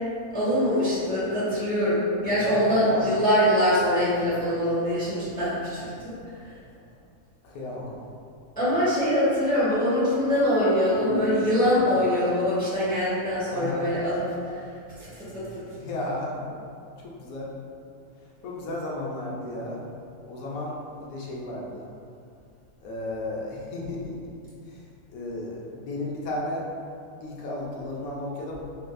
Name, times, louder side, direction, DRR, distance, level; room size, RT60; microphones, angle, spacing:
voice 1, 0.3-6.1 8.6-14.2 14.5-14.6 15.0-15.5, equal, 10° left, -13 dB, 0.8 m, -23 dB
voice 2, 2.6-3.1 7.4-8.0 13.5-13.9 15.8-16.5 17.0-17.5 18.4-19.8 20.2-21.9 22.8-24.2 24.7-24.8 25.1-26.7 27.2-28.6, left 1 dB, 85° left, -3 dB, 1.1 m, -34 dB
4.2 x 2.4 x 2.2 m, 2.4 s
omnidirectional pair, 1.4 m